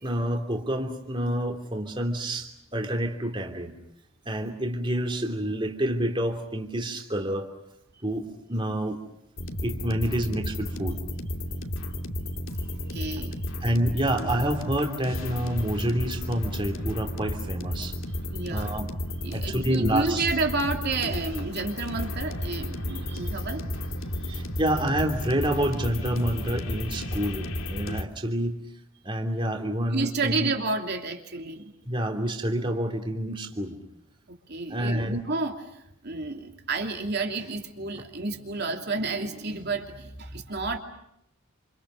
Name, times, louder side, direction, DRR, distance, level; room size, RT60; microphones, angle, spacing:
voice 1, 0.0-3.7 4.3-7.5 8.0-9.0 9.6-11.0 13.6-18.0 18.5-18.9 19.3-20.3 24.2-28.6 29.0-30.5 31.9-33.7 34.7-35.2, right 1 dB, 25° right, 3 dB, 3.0 m, -28 dB
sound 1, 9.4-28.0, left 1 dB, 65° left, 2.8 m, -33 dB
voice 2, 12.7-13.4 18.3-18.7 19.2-23.6 24.3-24.4 29.9-31.7 34.3-35.6 36.0-40.8, right 3 dB, 50° right, 3 dB, 2.9 m, -30 dB
28.5 x 28.5 x 6.5 m, 0.78 s
head